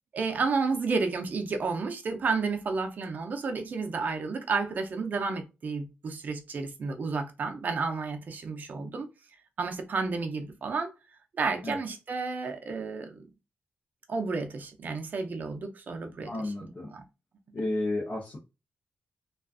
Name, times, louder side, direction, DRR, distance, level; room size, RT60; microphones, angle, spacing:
voice 1, 0.1-9.1 9.6-10.9 11.4-13.2 14.1-16.5 16.9-17.0, right 4 dB, 45° right, 0.5 m, -31 dB
voice 2, 16.2-16.9 17.5-18.4, left 2 dB, 35° left, 0.7 m, -32 dB
2.4 x 2.3 x 2.4 m
wide cardioid pair, 150°, 4 cm